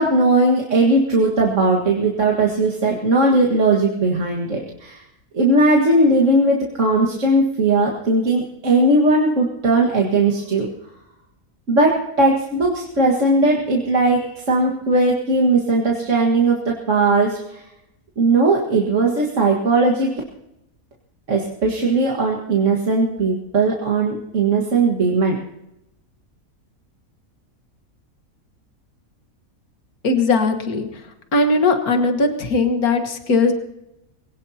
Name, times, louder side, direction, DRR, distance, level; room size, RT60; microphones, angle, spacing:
voice 1, 0.0-5.0 5.3-10.7 11.7-17.6 18.2-20.1 21.3-25.4, right 2 dB, 55° right, -2 dB, 2.1 m, -18 dB
voice 2, 30.0-30.8 31.3-33.5, left 3 dB, 85° left, 6 dB, 2.1 m, -18 dB
21.5 x 18.0 x 2.9 m, 0.87 s
omnidirectional pair, 1.5 m